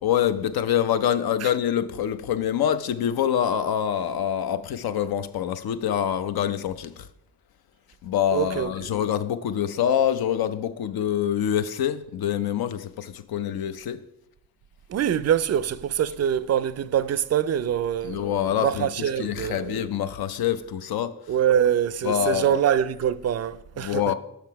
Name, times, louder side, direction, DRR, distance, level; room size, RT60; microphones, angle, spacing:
voice 1, 0.0-7.1 8.0-14.0 18.0-21.1 22.0-22.6 23.8-24.1, left 9 dB, 65° left, 0.6 m, -25 dB
voice 2, 8.3-8.9 14.9-18.2 18.6-19.8 21.3-24.0, right 9 dB, 40° right, 0.4 m, -24 dB
5.8 x 5.8 x 4.6 m
supercardioid pair, 40°, 40 cm